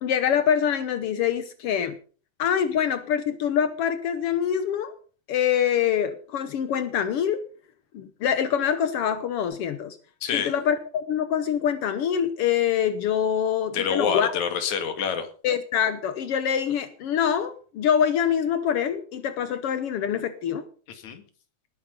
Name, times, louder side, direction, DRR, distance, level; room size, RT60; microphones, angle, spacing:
voice 1, 0.0-2.0 2.4-4.9 5.3-7.4 7.9-10.0 10.3-14.3 15.4-20.7, left 8 dB, 85° left, 11 dB, 1.3 m, -25 dB
voice 2, 10.2-10.5 13.7-15.3 20.9-21.2, left 7 dB, 55° left, 8 dB, 3.3 m, -27 dB
19.5 x 10.0 x 5.2 m, 0.41 s
omnidirectional pair, 4.1 m